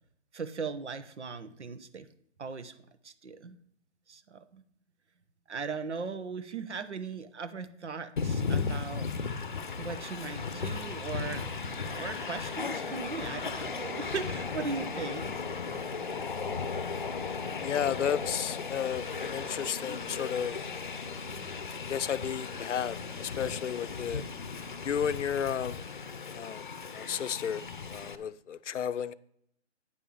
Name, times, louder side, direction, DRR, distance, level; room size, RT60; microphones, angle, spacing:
voice 1, 0.3-2.1 2.4-2.7 3.0-3.6 4.1-4.6 5.5-9.1 9.8-11.5 11.8-15.3, right 5 dB, 70° right, 1.2 m, -38 dB
Train, 8.2-28.2, left 5 dB, 45° left, 0.7 m, -36 dB
voice 2, 17.6-21.2 21.9-24.2 24.8-25.9 26.3-26.6 26.9-29.1, left 8 dB, 80° left, 0.6 m, -33 dB
9.2 x 5.5 x 6.9 m
hypercardioid pair, 170°, 36 cm